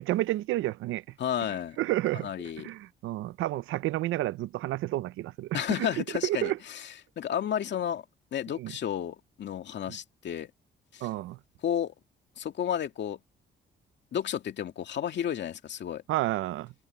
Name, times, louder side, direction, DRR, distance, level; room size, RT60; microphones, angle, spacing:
voice 1, 0.0-1.0 1.8-2.3 2.6-5.9 6.2-6.6 8.6-8.7 9.9-10.0 11.0-11.4 16.1-16.7, right 16 dB, 90° right, 0.7 m, -30 dB
voice 2, 1.2-1.8 2.1-2.7 5.5-6.9 7.2-8.0 8.3-10.5 10.9-11.1 11.6-11.9 12.4-13.2 14.1-16.0, left 9 dB, 65° left, 2.2 m, -32 dB
cardioid pair, 90°, 20 cm